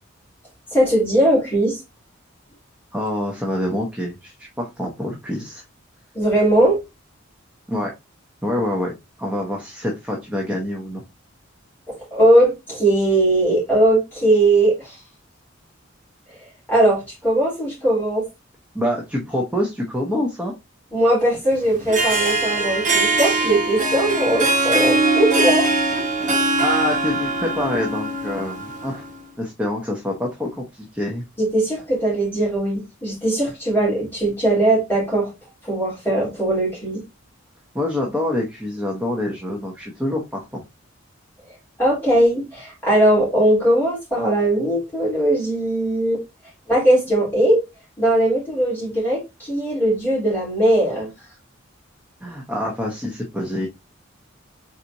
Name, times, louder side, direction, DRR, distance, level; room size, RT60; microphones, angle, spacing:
voice 1, 0.7-1.8 6.1-6.8 12.1-15.0 16.4-18.2 20.9-25.7 31.4-35.3 35.6-37.0 41.8-46.2 46.7-47.6 48.0-51.1, right 1 dB, 10° left, 3.2 m, -19 dB
voice 2, 2.9-5.6 7.7-7.9 8.4-8.9 9.2-11.0 18.7-20.5 26.3-29.0 29.4-31.2 37.7-40.6 52.2-53.7, left 1 dB, 5° right, 0.9 m, -26 dB
Harp, 21.7-29.1, right 2 dB, 40° right, 1.1 m, -21 dB
4.5 x 4.1 x 2.6 m
head